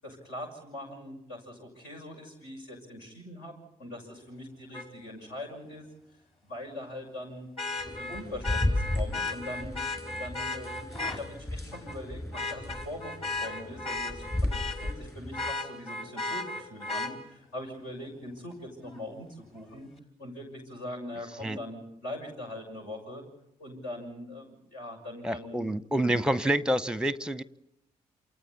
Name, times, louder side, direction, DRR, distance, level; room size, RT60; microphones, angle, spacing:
voice 1, 0.0-3.5 3.8-5.8 6.5-7.5 7.8-9.8 10.2-13.1 13.4-19.9 20.2-23.2 23.6-25.8, left 1 dB, 70° left, 6.7 m, -42 dB
Vehicle horn car horn honking, 4.7-4.9 7.6-11.2 11.7-12.0 12.3-15.0 15.3-17.1 18.9-19.0, left 2 dB, 30° left, 4.5 m, -35 dB
sound 1, 7.8-15.5, left 1 dB, 15° left, 2.5 m, -35 dB
voice 2, 25.2-27.4, right 1 dB, 5° right, 0.9 m, -28 dB
28.5 x 28.0 x 4.1 m
figure-of-eight pair, 40°, 18 cm